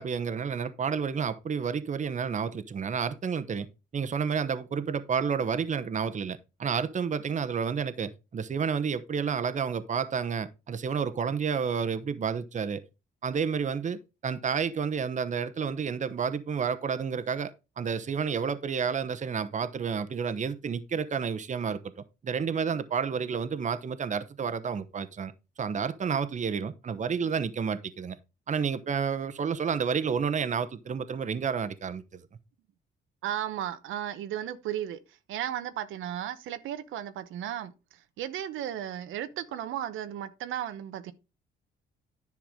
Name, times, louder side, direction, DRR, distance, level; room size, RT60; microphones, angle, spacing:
voice 1, 0.0-3.7 3.9-12.8 13.2-17.5 17.8-21.8 22.2-25.3 25.6-28.2 28.5-32.2, right 6 dB, 40° right, 0.9 m, -30 dB
voice 2, 33.2-35.0 35.3-37.7 38.2-41.1, right 11 dB, 85° right, 1.0 m, -34 dB
10.5 x 5.9 x 3.7 m
cardioid pair, 90°, 20 cm